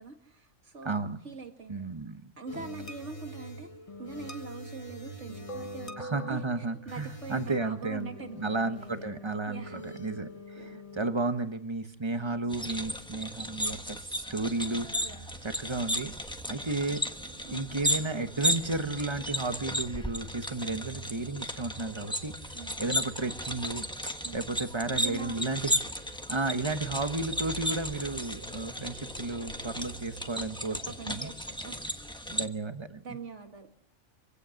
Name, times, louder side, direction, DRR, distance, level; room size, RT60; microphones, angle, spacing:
voice 1, 0.0-1.9 2.4-3.7 4.0-8.9 9.5-9.9 10.6-10.8 15.0-15.3 17.4-17.7 22.5-22.8 24.2-24.4 24.9-25.5 30.7-31.9 32.1-32.4 33.0-33.7, right 4 dB, 75° right, 5 dB, 2.4 m, -44 dB
voice 2, 0.8-1.2 1.7-2.3 6.0-8.1 8.4-14.9 15.4-16.1 16.5-17.0 17.5-22.3 22.8-25.8 26.3-31.3 32.2-33.0, right 3 dB, 25° right, 9 dB, 1.2 m, -33 dB
sound 1, 2.5-11.1, equal, 30° left, 1.2 m, -44 dB
sound 2, 12.5-32.5, equal, 5° left, 1.2 m, -35 dB
sound 3, 14.7-32.1, right 2 dB, 50° right, 2.2 m, -50 dB
25.0 x 16.5 x 6.5 m, 0.72 s
omnidirectional pair, 1.2 m